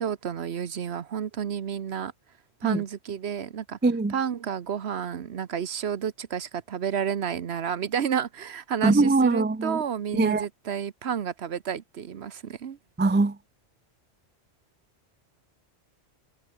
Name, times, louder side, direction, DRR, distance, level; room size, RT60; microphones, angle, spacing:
voice 1, 0.0-2.1 2.6-3.8 4.1-12.8, right 8 dB, 65° right, 1.2 m, -31 dB
voice 2, 3.8-4.1 8.8-9.8 10.1-10.5 13.0-13.4, right 3 dB, 15° right, 0.3 m, -22 dB
omnidirectional pair, 1.2 m